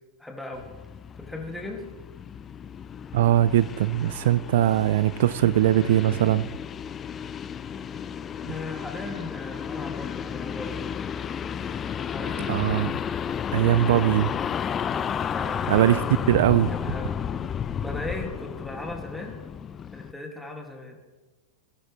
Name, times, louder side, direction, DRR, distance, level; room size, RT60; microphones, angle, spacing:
voice 1, 0.2-0.6 1.2-1.8 8.5-10.8 12.1-12.5 15.3-16.3 16.6-17.1 17.8-19.4 19.9-21.0, left 2 dB, 5° left, 1 dB, 2.2 m, -37 dB
sound 1, 0.5-20.1, left 8 dB, 25° left, 0.4 m, -33 dB
voice 2, 3.1-6.5 12.5-12.9 13.5-14.3 15.7-16.0 16.3-16.7, right 13 dB, 60° right, 17 dB, 0.3 m, -21 dB
19.0 x 10.0 x 3.2 m, 1.3 s
figure-of-eight pair, 90°, 0 cm